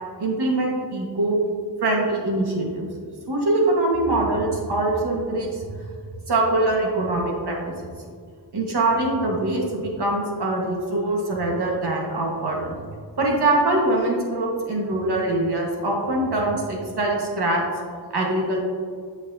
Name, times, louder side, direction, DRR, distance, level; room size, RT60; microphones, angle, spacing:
voice 1, 0.2-1.4 1.8-2.8 3.3-5.7 6.3-7.6 7.8-7.9 8.5-12.8 13.2-17.6 18.1-18.6, right 2 dB, 65° right, -1 dB, 1.6 m, -23 dB
8.2 x 6.9 x 2.8 m, 2.1 s
wide cardioid pair, 100°, 43 cm